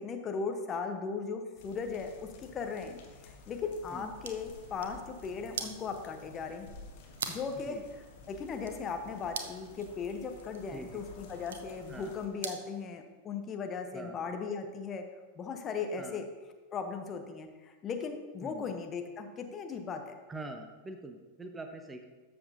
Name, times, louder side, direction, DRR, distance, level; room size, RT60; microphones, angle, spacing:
voice 1, 0.0-6.7 7.3-7.8 8.3-15.1 15.4-16.3 16.7-20.1, left 5 dB, 25° left, 5 dB, 0.9 m, -37 dB
sound 1, 1.6-12.3, left 3 dB, 50° left, 1.2 m, -53 dB
sound 2, 3.9-12.8, right 6 dB, 65° right, 0.7 m, -45 dB
voice 2, 10.7-11.0 11.9-12.1 13.9-14.2 16.0-16.2 18.4-18.7 20.3-22.0, right 2 dB, 15° right, 5 dB, 0.7 m, -44 dB
13.0 x 7.0 x 2.6 m, 1.3 s
figure-of-eight pair, 90°, 0 cm